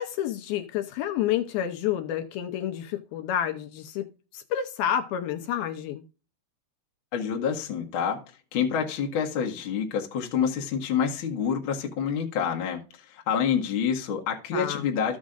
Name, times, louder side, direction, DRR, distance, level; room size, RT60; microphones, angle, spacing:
voice 1, 0.0-6.0 14.5-14.9, left 10 dB, 80° left, 2.4 m, -29 dB
voice 2, 7.1-8.2 8.5-12.8 13.3-15.2, left 7 dB, 60° left, 1.4 m, -27 dB
14.5 x 6.2 x 2.5 m
omnidirectional pair, 4.7 m